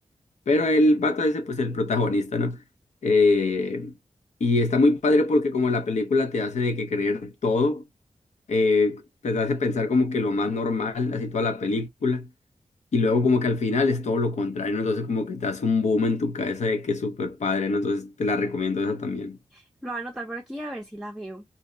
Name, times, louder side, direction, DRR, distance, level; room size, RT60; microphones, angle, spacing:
voice 1, 0.5-2.6 3.0-3.9 4.4-7.8 8.5-12.3 12.9-19.4, left 3 dB, 85° left, 0.7 m, -24 dB
voice 2, 19.5-21.4, right 2 dB, 5° right, 0.6 m, -36 dB
2.7 x 2.1 x 3.7 m
wide cardioid pair, 85°, 12 cm